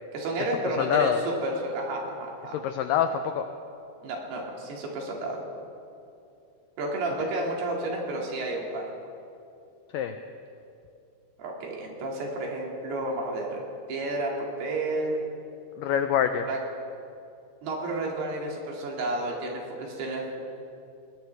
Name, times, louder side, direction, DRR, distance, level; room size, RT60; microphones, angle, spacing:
voice 1, 0.1-1.1 1.4-2.6 4.0-5.4 6.8-8.9 11.4-13.6 13.9-15.2 16.5-16.6 17.6-20.2, right 2 dB, 80° right, -1 dB, 4.3 m, -31 dB
voice 2, 0.6-1.2 2.4-3.5 7.2-7.3 9.9-10.2 15.8-16.5, left 8 dB, 85° left, 7 dB, 1.9 m, -26 dB
20.5 x 20.0 x 3.4 m, 2.6 s
omnidirectional pair, 4.6 m